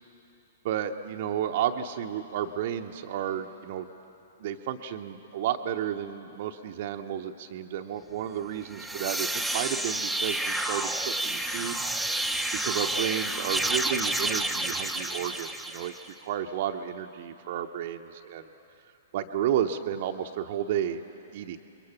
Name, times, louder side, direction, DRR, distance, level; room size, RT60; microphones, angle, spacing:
voice 1, 0.6-3.9 4.4-11.8 12.6-15.9 16.2-18.4 19.1-21.0 21.3-21.6, right 10 dB, 50° right, 5 dB, 0.9 m, -32 dB
sound 1, 8.6-16.1, right 1 dB, ahead, 0.9 m, -30 dB
29.5 x 22.0 x 5.9 m, 3.0 s
figure-of-eight pair, 110°, 0 cm